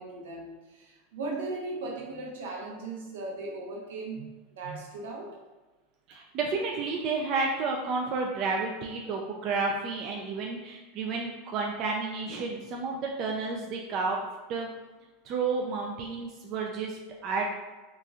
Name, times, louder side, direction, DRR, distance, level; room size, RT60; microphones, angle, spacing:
voice 1, 0.0-5.4, right 2 dB, 85° right, -2 dB, 0.7 m, -38 dB
voice 2, 6.1-14.2 14.5-14.7 15.3-17.4, right 4 dB, 45° right, 0 dB, 0.3 m, -31 dB
2.9 x 2.4 x 2.3 m, 1.2 s
hypercardioid pair, 110°, 0 cm